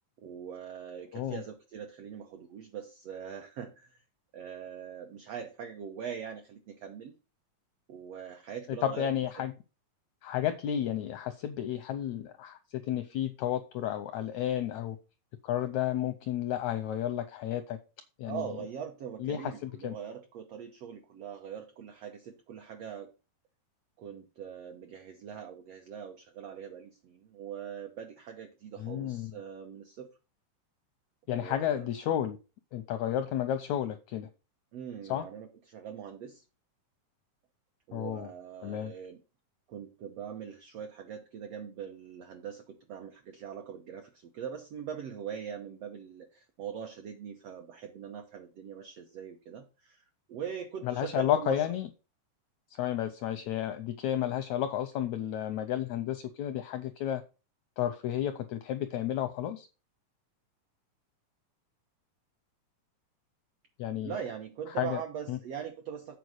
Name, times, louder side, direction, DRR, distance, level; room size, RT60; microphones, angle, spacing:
voice 1, 0.2-4.0 4.3-7.1 7.9-9.1 9.3-9.4 18.2-23.1 24.0-30.1 31.3-31.9 34.7-36.4 37.9-39.2 39.7-51.6 64.0-66.2, right 8 dB, 70° right, 5 dB, 1.5 m, -42 dB
voice 2, 8.8-9.5 10.2-15.0 15.4-17.8 18.2-18.4 19.2-19.9 28.8-29.3 31.3-32.4 32.7-34.3 35.1-35.2 37.9-38.3 38.6-38.9 50.8-51.9 52.8-57.2 57.8-59.7 63.8-64.1 64.8-65.0 65.3-65.4, left 11 dB, 80° left, 9 dB, 1.6 m, -32 dB
8.2 x 4.6 x 6.3 m, 0.31 s
omnidirectional pair, 4.0 m